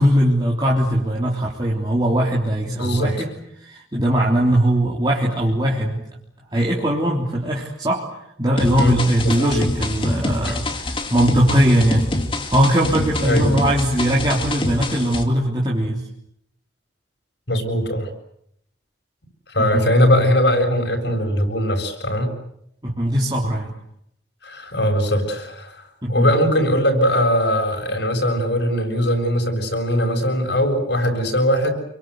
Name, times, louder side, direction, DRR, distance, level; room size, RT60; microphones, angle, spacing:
voice 1, 0.0-3.3 3.6-6.1 6.5-8.0 8.4-12.1 12.4-16.0 19.6-19.9 22.8-23.7 26.0-26.3, equal, 20° right, -3 dB, 3.5 m, -20 dB
voice 2, 2.7-3.1 8.7-9.0 9.2-9.5 10.5-10.6 13.2-13.6 17.5-18.1 19.5-22.3 24.4-25.8 26.1-31.7, equal, 65° left, 4 dB, 7.4 m, -20 dB
sound 1, 8.6-15.2, left 1 dB, 25° left, 2.6 m, -25 dB
30.0 x 23.5 x 8.1 m, 0.74 s
head